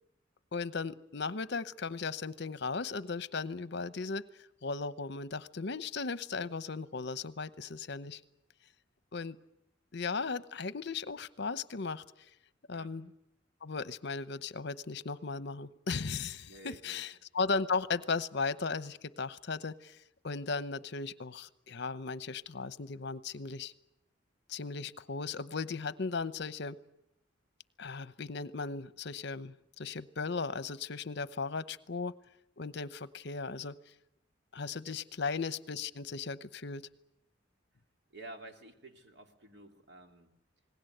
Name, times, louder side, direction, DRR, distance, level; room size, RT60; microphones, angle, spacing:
voice 1, 0.5-4.2 4.6-8.2 9.1-9.4 9.9-12.3 12.7-13.1 13.6-23.7 24.5-26.8 27.8-32.1 32.6-33.8 34.5-36.8, left 4 dB, 60° left, 15 dB, 0.9 m, -36 dB
voice 2, 16.4-17.0 34.8-35.0 38.1-40.3, right 2 dB, 65° right, 4 dB, 2.8 m, -51 dB
28.0 x 19.5 x 8.0 m, 0.83 s
head